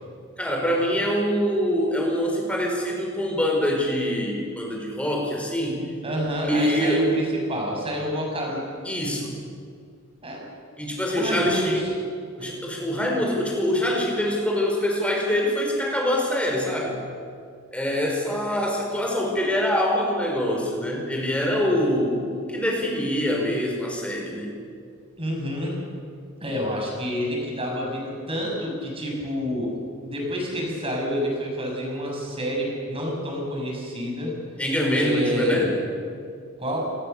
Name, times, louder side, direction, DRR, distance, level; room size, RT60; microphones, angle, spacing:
voice 1, 0.4-5.8 6.4-7.1 8.8-9.3 10.8-11.9 12.4-17.0 17.7-24.5 34.6-35.7, equal, 5° left, 0 dB, 5.0 m, -24 dB
voice 2, 6.0-8.6 10.2-10.4 11.1-11.9 12.4-12.5 25.2-25.7 26.4-29.7 30.0-34.3 34.9-35.8 36.6-36.8, equal, 25° right, -1 dB, 6.6 m, -28 dB
26.5 x 20.5 x 6.8 m, 2.3 s
head